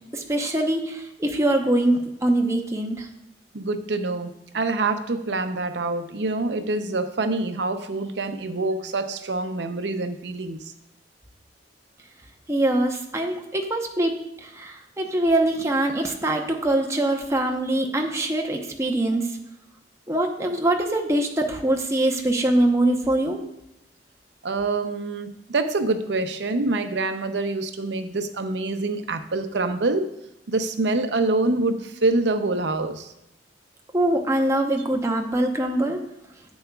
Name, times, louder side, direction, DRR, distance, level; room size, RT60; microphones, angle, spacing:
voice 1, 0.1-3.1 12.5-19.3 20.1-23.4 33.9-36.0, right 1 dB, 15° right, 2 dB, 0.8 m, -23 dB
voice 2, 3.5-10.6 24.4-30.1 30.5-33.1, right 3 dB, 75° right, 8 dB, 0.7 m, -26 dB
10.5 x 7.8 x 2.3 m, 0.84 s
head